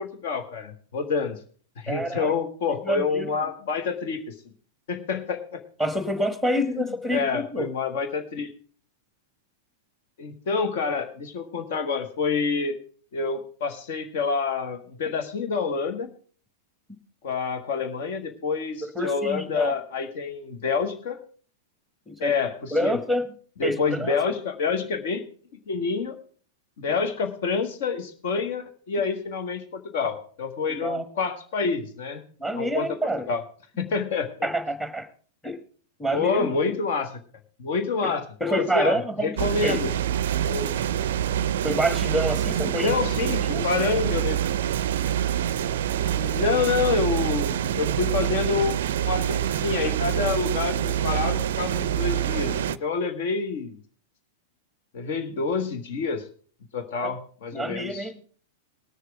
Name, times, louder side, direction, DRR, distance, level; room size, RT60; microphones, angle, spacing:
voice 1, 0.0-1.4 1.8-4.3 4.9-5.6 6.5-8.5 10.2-12.7 13.1-16.1 17.2-21.2 22.2-23.0 23.6-25.2 25.7-26.2 26.8-32.2 32.5-33.0 33.3-33.4 33.8-34.5 36.1-37.2 37.6-39.9 40.4-40.7 42.8-44.4 45.9-53.8 54.9-56.2 56.7-58.1, left 5 dB, 55° left, 8 dB, 1.5 m, -27 dB
voice 2, 1.9-2.3 2.8-3.3 5.8-7.7 18.8-19.7 22.1-22.3 22.7-23.3 23.6-24.2 30.7-31.0 32.4-33.3 34.4-35.1 35.4-35.6 36.0-36.5 38.0-38.1 38.4-39.8 41.6-42.9 43.2-43.7 57.5-58.2, equal, 5° left, 12 dB, 1.4 m, -27 dB
sound 1, 39.4-52.8, right 10 dB, 60° right, 0.4 m, -26 dB
19.0 x 6.6 x 4.7 m, 0.44 s
figure-of-eight pair, 95°, 0 cm